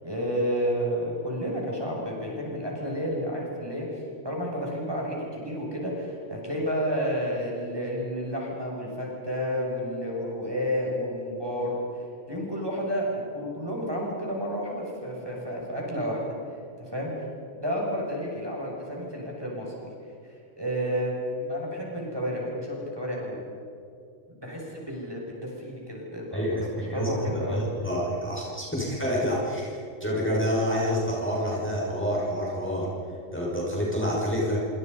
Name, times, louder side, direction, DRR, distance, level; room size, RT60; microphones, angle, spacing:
voice 1, 0.0-11.8 12.3-16.4 16.8-17.1 17.5-19.8 20.2-23.4 24.3-27.6, equal, 15° right, -3 dB, 6.9 m, -31 dB
voice 2, 26.3-32.9 33.3-34.6, equal, 10° left, -4 dB, 6.1 m, -28 dB
28.0 x 27.0 x 5.6 m, 2.5 s
omnidirectional pair, 1.4 m